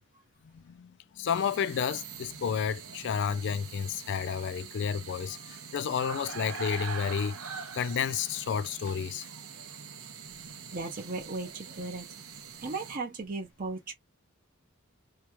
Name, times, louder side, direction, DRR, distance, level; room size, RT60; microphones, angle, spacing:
voice 1, 0.5-7.4 7.7-9.3, left 7 dB, 55° left, 0.3 m, -31 dB
sound 1, 1.2-13.0, right 5 dB, 75° right, 0.8 m, -43 dB
voice 2, 10.7-12.2 12.6-13.9, right 3 dB, 40° right, 0.8 m, -36 dB
2.9 x 2.3 x 3.0 m
head